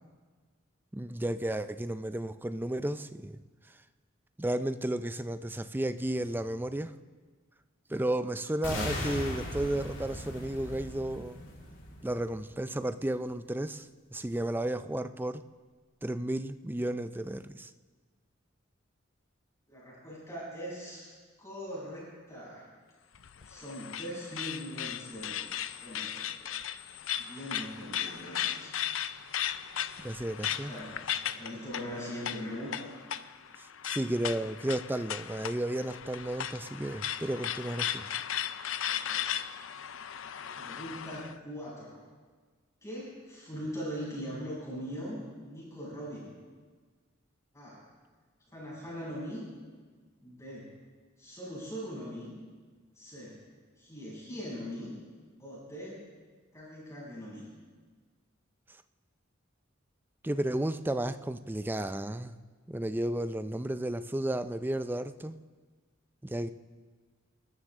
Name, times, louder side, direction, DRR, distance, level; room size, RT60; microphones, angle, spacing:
voice 1, 0.9-3.4 4.4-6.9 7.9-11.4 12.0-15.4 16.0-17.7 30.0-30.7 33.6-38.1 60.2-62.4 62.7-65.4 66.2-66.5, right 1 dB, 10° right, 11 dB, 0.5 m, -33 dB
sound 1, 8.6-12.7, left 1 dB, 65° left, 3.6 m, -38 dB
voice 2, 19.7-21.1 21.4-22.7 23.5-26.6 27.2-28.8 30.5-30.9 31.2-32.9 38.8-39.5 40.5-42.0 42.8-46.3 47.5-47.8 48.5-49.4 50.2-50.7 51.2-52.3 53.0-53.4 53.8-54.9 55.4-56.0 56.5-57.5, equal, 15° left, -7 dB, 7.1 m, -41 dB
sound 2, 23.1-41.3, left 10 dB, 90° left, 0.6 m, -37 dB
29.5 x 13.0 x 3.7 m, 1.5 s
head